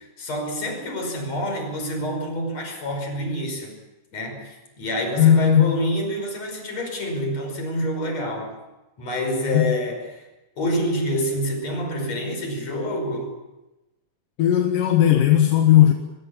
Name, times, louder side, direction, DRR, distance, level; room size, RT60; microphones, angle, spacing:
voice 1, 0.0-3.7 4.1-8.6 9.0-10.0 10.6-13.3, equal, 50° left, 4 dB, 6.6 m, -27 dB
voice 2, 5.2-6.0 9.5-9.8 14.4-15.9, left 11 dB, 80° left, 4 dB, 3.0 m, -17 dB
22.5 x 22.0 x 7.4 m, 1.0 s
omnidirectional pair, 3.8 m